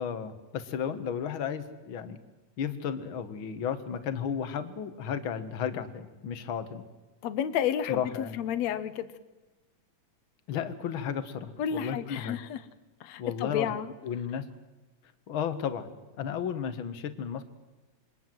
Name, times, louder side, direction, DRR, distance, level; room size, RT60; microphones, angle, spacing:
voice 1, 0.0-2.2 2.6-6.8 7.9-8.4 10.5-12.4 13.2-13.8 14.0-14.5 15.3-17.4, left 8 dB, 50° left, 10 dB, 2.0 m, -33 dB
voice 2, 7.2-9.1 11.6-12.6 13.0-13.9, left 9 dB, 65° left, 13 dB, 2.3 m, -31 dB
28.0 x 22.5 x 7.8 m, 1.2 s
omnidirectional pair, 3.5 m